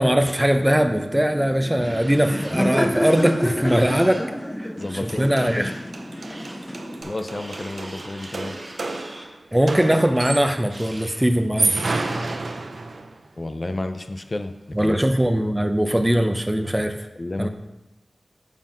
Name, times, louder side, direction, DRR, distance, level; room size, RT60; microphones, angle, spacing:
voice 1, 0.0-4.3 4.6-4.7 5.0-5.7 9.5-11.8 14.7-17.0 17.4-17.5, equal, 10° right, 7 dB, 0.6 m, -20 dB
Laughter, 0.7-7.0, equal, 15° left, 0.9 m, -29 dB
sound 1, 1.5-2.6 3.0-4.3 4.8-6.6 7.3-9.3 10.4-11.2 11.5-12.4, right 1 dB, 45° right, 1.9 m, -42 dB
voice 2, 4.8-5.7 7.0-8.6 13.4-15.0 17.2-17.5, left 2 dB, 40° left, 8 dB, 0.5 m, -31 dB
sound 2, 4.8-4.9 5.1-10.7 11.4-13.2, right 3 dB, 70° right, 0.6 m, -30 dB
7.5 x 5.6 x 5.2 m, 0.97 s
wide cardioid pair, 70°, 0 cm